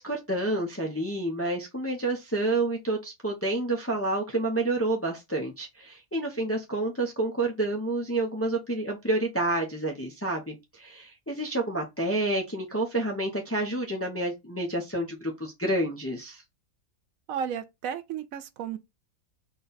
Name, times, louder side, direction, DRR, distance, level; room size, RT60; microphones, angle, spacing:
voice 1, 0.0-16.4, right 2 dB, 15° left, 0.5 m, -29 dB
voice 2, 17.3-18.8, right 8 dB, 80° right, 1.0 m, -33 dB
4.0 x 2.3 x 4.0 m
omnidirectional pair, 1.5 m